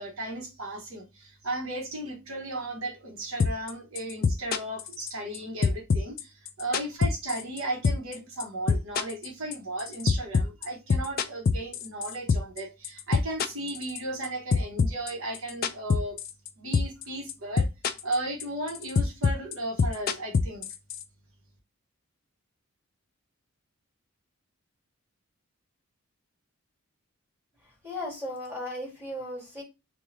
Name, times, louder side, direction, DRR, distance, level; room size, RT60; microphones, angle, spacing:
voice 1, 0.0-16.2 16.6-17.7 18.0-20.7, right 1 dB, 65° right, 0.9 m, -35 dB
sound 1, 3.4-3.7 4.0-5.4 5.6-7.6 7.8-8.1 8.4-12.6 12.8-14.3 14.5-16.5 16.7-17.0 17.3-18.1 18.4-21.0, left 5 dB, 40° left, 0.3 m, -24 dB
voice 2, 27.8-29.6, left 1 dB, 10° right, 1.7 m, -36 dB
3.2 x 2.3 x 3.7 m
head